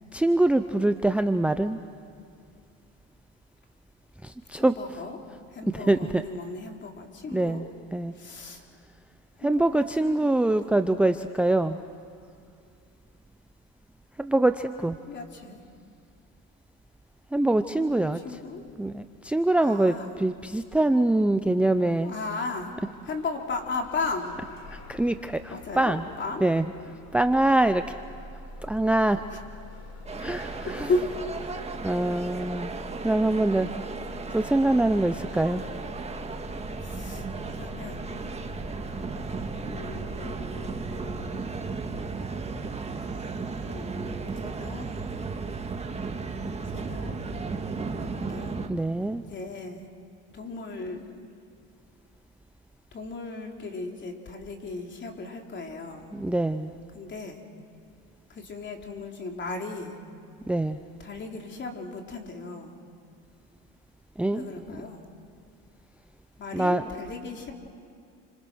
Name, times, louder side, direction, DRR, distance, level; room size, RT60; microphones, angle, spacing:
voice 1, 0.1-1.8 4.2-4.8 5.7-6.2 7.3-7.6 7.9-8.1 9.4-11.8 14.2-15.0 17.3-18.2 18.8-22.1 24.7-26.0 26.4-26.6 27.1-28.0 28.6-29.2 30.2-30.9 31.8-32.7 33.0-33.8 34.3-35.6 48.7-49.2 56.1-56.7 60.5-60.8 64.2-64.4 66.5-66.8, right 2 dB, 5° right, 10 dB, 0.6 m, -24 dB
voice 2, 4.5-5.2 5.5-7.7 8.1-8.6 9.4-10.8 15.1-15.6 17.8-18.7 19.6-20.1 22.0-22.8 23.0-24.4 25.5-26.5 29.2-29.4 30.1-30.2 30.6-31.1 31.4-31.7 36.8-38.1 39.6-41.4 43.6-44.9 46.7-47.2 47.7-48.6 49.3-49.9 50.3-51.0 52.9-56.1 56.9-57.4 58.3-60.0 61.0-62.8 64.3-65.0 66.4-67.5, left 3 dB, 35° left, 2 dB, 3.6 m, -36 dB
Bus / Engine starting, 22.6-41.2, left 2 dB, 80° left, 4.1 m, -44 dB
sound 1, 30.1-48.7, right 4 dB, 20° right, 1.7 m, -35 dB
29.5 x 26.0 x 6.3 m, 2.4 s
cardioid pair, 110°, 30 cm